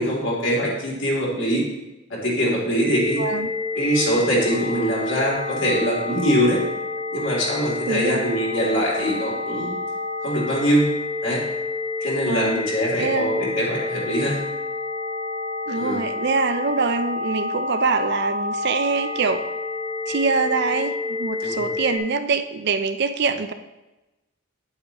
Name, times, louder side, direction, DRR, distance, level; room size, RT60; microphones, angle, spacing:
voice 1, 0.0-1.6 2.1-3.2 3.7-6.6 7.1-9.7 10.2-10.9 11.2-11.4 12.0-14.4 15.7-16.0 21.4-21.6, equal, 60° left, -4 dB, 3.0 m, -23 dB
sound 1, 2.8-22.0, left 3 dB, 15° right, 1.4 m, -29 dB
voice 2, 3.1-3.5 7.9-8.2 12.0-12.6 13.0-13.6 15.7-19.4 20.1-23.5, right 4 dB, 55° right, 9 dB, 0.5 m, -24 dB
9.3 x 8.7 x 3.0 m, 1.0 s
head